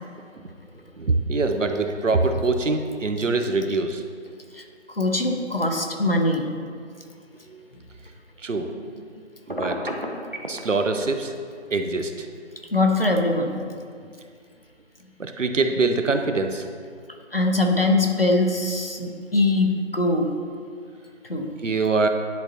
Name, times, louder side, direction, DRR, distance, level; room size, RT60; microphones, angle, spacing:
voice 1, 1.0-4.0 7.5-7.6 8.4-8.9 9.5-10.0 10.5-11.3 11.7-12.3 15.2-16.7 21.6-22.1, right 3 dB, 85° right, 6 dB, 0.7 m, -24 dB
voice 2, 4.5-6.5 12.7-13.6 17.3-20.3 21.3-21.5, left 2 dB, 50° left, 3 dB, 0.7 m, -22 dB
Telephone, 9.5-10.6, equal, 45° right, 0.6 m, -29 dB
10.5 x 4.0 x 2.8 m, 2.1 s
figure-of-eight pair, 180°, 37 cm